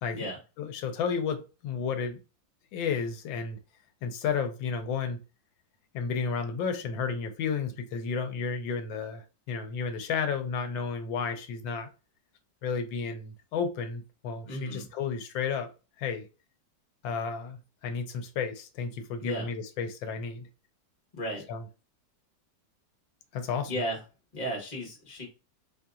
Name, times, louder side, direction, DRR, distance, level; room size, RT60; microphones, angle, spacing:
voice 1, 0.6-2.2 2.7-3.6 4.0-5.2 5.9-11.9 12.6-15.7 16.0-16.3 17.0-20.5 21.5-21.6 23.3-23.7, left 6 dB, 85° left, 1.4 m, -32 dB
voice 2, 14.5-14.9 19.2-19.5 21.1-21.5 23.7-24.0 24.3-25.3, equal, 25° left, 1.2 m, -34 dB
4.4 x 2.7 x 2.4 m
omnidirectional pair, 2.1 m